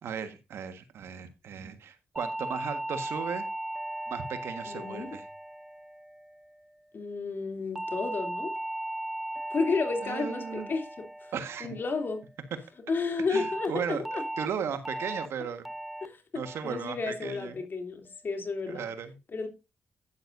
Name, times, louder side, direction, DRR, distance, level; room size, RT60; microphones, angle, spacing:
voice 1, 0.0-3.5 4.1-5.3 10.0-10.7 11.3-11.7 13.3-15.7 16.3-17.5 18.7-19.2, right 7 dB, 75° right, 1.5 m, -36 dB
sound 1, 2.2-6.6 7.8-12.2 13.4-13.7 14.1-14.5 14.9-15.3 15.7-16.1 16.5-16.9 17.3-17.7, right 1 dB, 5° right, 0.7 m, -37 dB
voice 2, 4.6-5.2 6.9-8.5 9.5-11.3 11.6-12.2 12.9-14.2 16.0-18.9 19.3-19.5, left 4 dB, 50° left, 3.0 m, -32 dB
11.5 x 9.8 x 2.6 m
cardioid pair, 60°, 4 cm